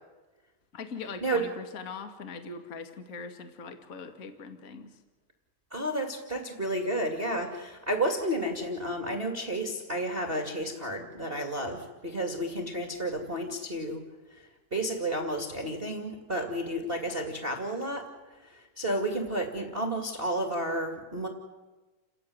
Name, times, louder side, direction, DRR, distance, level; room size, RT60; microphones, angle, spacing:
voice 1, 0.7-5.0, left 4 dB, 30° left, 6 dB, 1.9 m, -41 dB
voice 2, 5.7-14.0 14.7-18.1 18.4-21.3, right 1 dB, 20° right, 2 dB, 2.0 m, -31 dB
30.0 x 15.0 x 9.6 m, 1.2 s
omnidirectional pair, 3.7 m